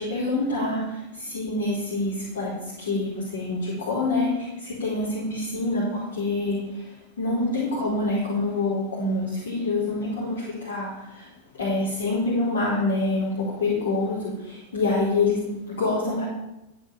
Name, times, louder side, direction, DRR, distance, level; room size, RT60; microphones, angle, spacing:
voice 1, 0.0-16.3, left 2 dB, 65° left, -6 dB, 4.8 m, -26 dB
14.0 x 10.0 x 7.0 m, 0.96 s
figure-of-eight pair, 90°, 0 cm